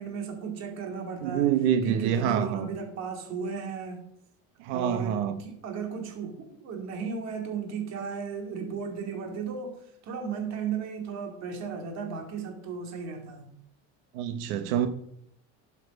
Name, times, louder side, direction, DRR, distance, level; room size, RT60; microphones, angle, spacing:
voice 1, 0.0-1.6 1.8-4.0 4.7-13.5, right 6 dB, 50° right, 2.6 m, -35 dB
voice 2, 1.2-2.7 4.6-5.4 14.1-14.9, right 9 dB, 85° right, 1.0 m, -26 dB
11.0 x 7.4 x 5.2 m
cardioid pair, 135°, 33 cm